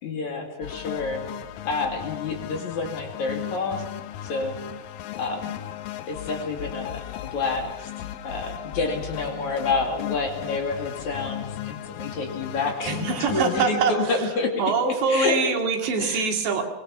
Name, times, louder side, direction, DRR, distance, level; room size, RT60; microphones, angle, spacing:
voice 1, 0.0-1.3 1.6-3.8 4.3-4.5 5.2-5.6 6.1-7.9 8.2-14.5 15.1-15.4 16.0-16.3, left 3 dB, 50° left, 2 dB, 3.3 m, -28 dB
sound 1, 0.6-13.7, left 12 dB, 70° left, 2.2 m, -36 dB
voice 2, 12.9-14.3 14.6-16.6, right 4 dB, 80° right, 3 dB, 4.5 m, -24 dB
23.5 x 21.0 x 5.9 m, 1.0 s
omnidirectional pair, 4.9 m